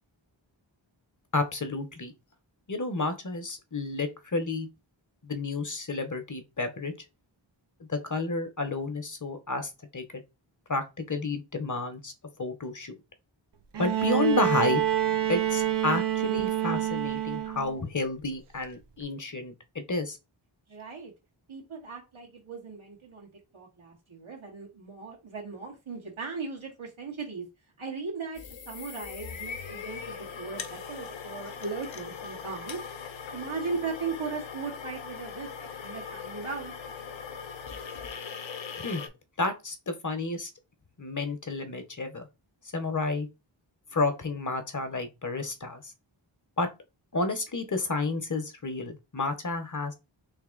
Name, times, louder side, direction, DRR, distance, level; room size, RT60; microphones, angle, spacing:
voice 1, 1.3-2.1 2.7-4.7 5.2-6.9 7.9-10.2 10.7-12.1 12.4-12.9 13.8-14.8 15.3-20.2 38.8-39.0 39.4-40.5 41.0-42.3 42.7-43.3 43.9-45.8 46.6-46.7 47.1-49.9, left 3 dB, 40° left, 0.9 m, -31 dB
Bowed string instrument, 13.7-17.8 19.0-19.1, right 12 dB, 65° right, 0.6 m, -27 dB
voice 2, 20.7-21.1 21.5-23.3 23.5-27.5 27.8-28.4 28.7-32.8 33.3-35.5 35.8-36.7, right 4 dB, 90° right, 1.8 m, -37 dB
sound 1, 28.3-39.1, left 6 dB, 75° left, 0.7 m, -40 dB
3.4 x 2.7 x 3.8 m
wide cardioid pair, 60°, 47 cm